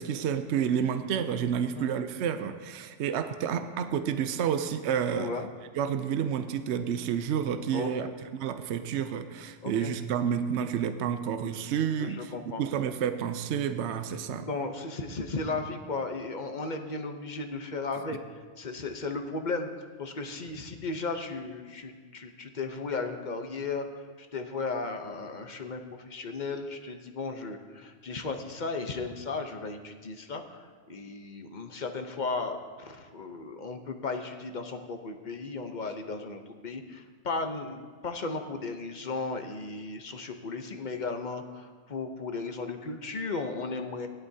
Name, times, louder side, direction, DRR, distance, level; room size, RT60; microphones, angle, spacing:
voice 1, 0.0-5.3 5.8-8.1 8.4-12.3 12.6-14.5, right 8 dB, 70° right, 9 dB, 0.9 m, -30 dB
voice 2, 5.1-5.5 7.7-8.1 9.6-9.9 12.0-12.6 14.3-18.2 18.6-19.7 20.0-23.9 24.2-30.6 30.9-44.1, left 3 dB, 40° left, 6 dB, 0.9 m, -35 dB
18.0 x 11.5 x 2.8 m, 1.5 s
omnidirectional pair, 1.3 m